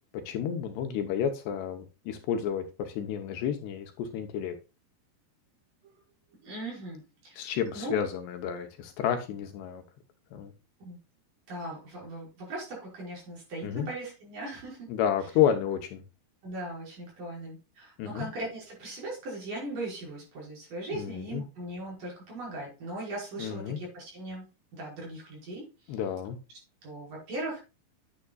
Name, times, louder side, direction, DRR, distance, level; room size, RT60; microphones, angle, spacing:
voice 1, 0.1-4.6 7.4-9.8 10.3-10.5 13.6-13.9 14.9-16.0 18.0-18.3 20.9-21.4 23.4-23.8 25.9-26.4, left 9 dB, 75° left, 6 dB, 2.9 m, -30 dB
voice 2, 6.4-8.0 10.8-11.0 11.5-14.9 16.4-24.4 24.7-26.0 26.8-27.6, right 1 dB, 45° right, -3 dB, 6.6 m, -39 dB
9.9 x 9.3 x 2.3 m, 0.29 s
omnidirectional pair, 5.2 m